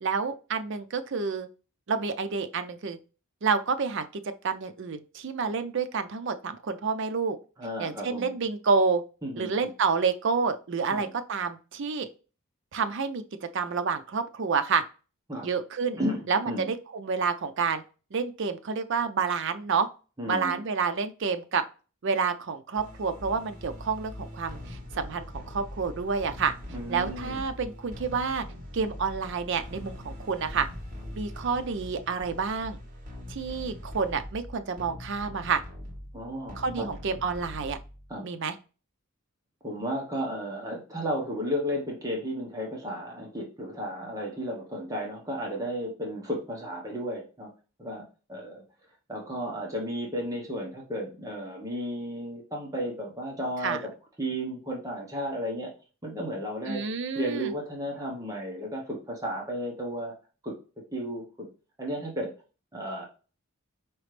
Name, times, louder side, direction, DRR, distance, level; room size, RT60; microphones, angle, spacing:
voice 1, 0.0-1.5 1.9-3.0 3.4-7.4 7.8-9.0 9.4-12.1 12.7-13.2 13.5-14.8 15.4-16.0 16.3-17.8 18.1-19.9 20.3-21.6 22.0-26.5 26.9-28.4 28.7-30.7 31.1-32.8 33.3-35.6 36.6-37.8 38.2-38.5 53.6-53.8 56.7-57.5, right 5 dB, 60° right, 8 dB, 0.5 m, -29 dB
voice 2, 7.6-8.3 9.2-9.7 10.9-11.1 15.3-15.5 16.0-16.7 20.2-20.6 26.7-27.4 36.1-36.9 38.1-38.3 39.6-47.5 47.8-48.0 48.3-48.6 49.1-53.9 54.2-55.7 56.0-56.8 57.1-60.1 60.4-60.5 60.9-61.5 61.8-62.3 62.7-63.1, equal, 15° right, -1 dB, 1.0 m, -33 dB
sound 1, 22.8-38.2, left 1 dB, 40° right, 1.5 m, -42 dB
4.9 x 3.0 x 3.2 m, 0.34 s
head